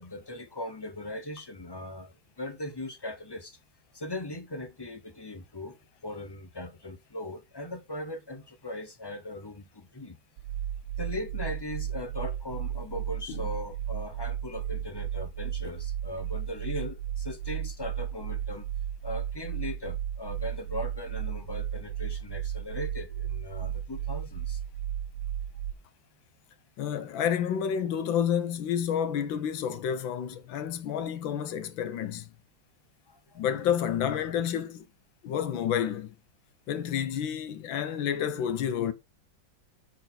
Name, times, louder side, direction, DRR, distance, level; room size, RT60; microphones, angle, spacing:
voice 1, 0.0-3.6 3.9-5.8 6.0-10.2 11.0-18.7 19.0-24.6 33.1-33.4, left 1 dB, 20° left, 0.6 m, -39 dB
sound 1, 10.4-25.7, right 10 dB, 85° right, 1.4 m, -34 dB
voice 2, 26.8-32.2 33.4-34.8 35.2-36.1 36.7-38.9, left 9 dB, 85° left, 1.6 m, -29 dB
9.1 x 4.6 x 3.9 m
omnidirectional pair, 2.1 m